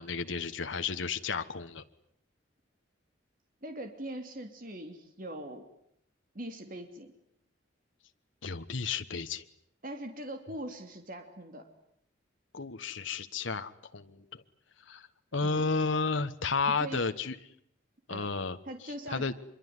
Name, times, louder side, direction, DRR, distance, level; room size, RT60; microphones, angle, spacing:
voice 1, 0.0-1.8 8.4-9.4 12.5-14.4 14.9-15.1 15.3-17.4 18.1-18.6 18.8-19.3, left 4 dB, 85° left, 8 dB, 1.3 m, -32 dB
voice 2, 3.6-5.6 6.3-7.1 9.8-11.6 15.4-15.6 16.6-17.0 18.1-18.3 18.7-19.4, right 1 dB, 45° right, 6 dB, 2.9 m, -41 dB
25.5 x 23.0 x 9.7 m, 0.72 s
head